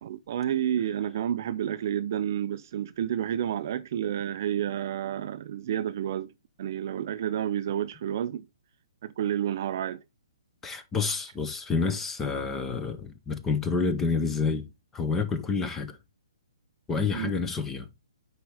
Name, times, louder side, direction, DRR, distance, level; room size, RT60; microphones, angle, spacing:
voice 1, 0.0-6.3 6.6-8.5 9.0-10.0 17.1-17.3, right 10 dB, 35° right, 0.4 m, -30 dB
voice 2, 10.6-16.0 16.9-17.9, left 4 dB, 10° left, 0.6 m, -29 dB
9.5 x 4.4 x 3.3 m
hypercardioid pair, 170°, 3 cm